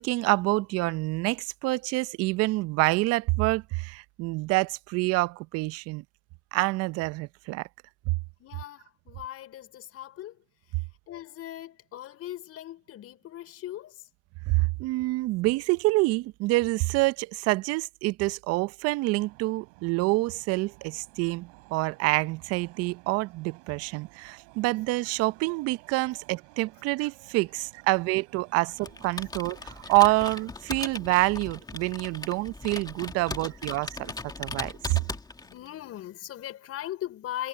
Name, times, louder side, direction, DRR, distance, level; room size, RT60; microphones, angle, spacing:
voice 1, 0.0-6.0 6.5-7.7 8.1-8.2 14.5-34.1 34.4-35.0, right 22 dB, 35° right, 0.7 m, -27 dB
voice 2, 8.4-10.4 10.8-14.1 33.1-33.4 34.2-34.5 35.0-37.5, left 13 dB, 35° left, 4.8 m, -40 dB
sound 1, 19.2-30.5, right 34 dB, 55° right, 6.4 m, -55 dB
Computer keyboard, 28.8-35.7, left 3 dB, 10° left, 2.1 m, -38 dB
hypercardioid pair, 110°, 42 cm